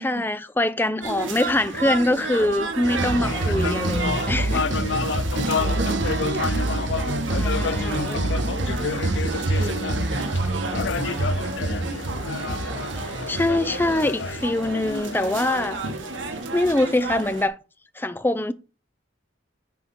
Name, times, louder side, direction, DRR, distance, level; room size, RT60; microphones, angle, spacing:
voice 1, 0.0-4.7 5.3-5.5 7.4-8.2 13.0-15.8 16.5-17.6 17.9-18.5, left 1 dB, 10° left, 0.5 m, -24 dB
sound 1, 1.0-17.5, right 3 dB, 90° right, 1.7 m, -33 dB
sound 2, 2.8-14.7, right 2 dB, 70° right, 1.2 m, -27 dB
sound 3, 2.9-16.6, left 5 dB, 70° left, 0.4 m, -31 dB
voice 2, 3.0-4.2 5.4-8.0 8.4-10.3, right 1 dB, 55° right, 1.6 m, -34 dB
9.2 x 4.1 x 6.0 m
head